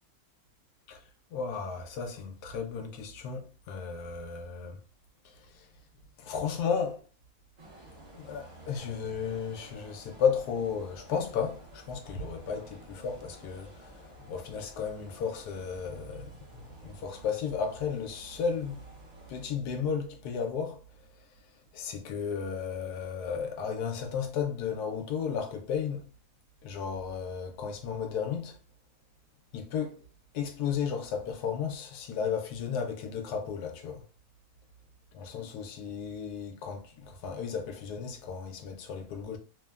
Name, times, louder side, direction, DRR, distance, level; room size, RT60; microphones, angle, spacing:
voice 1, 0.9-4.8 5.2-5.7 6.2-7.0 8.2-18.9 19.3-21.3 21.7-26.1 26.6-28.6 29.5-30.1 30.3-34.0 35.1-39.4, left 6 dB, 90° left, 1.2 m, -34 dB
sound 1, 7.6-19.4, right 1 dB, 40° right, 0.7 m, -52 dB
3.1 x 2.1 x 2.3 m
omnidirectional pair, 1.6 m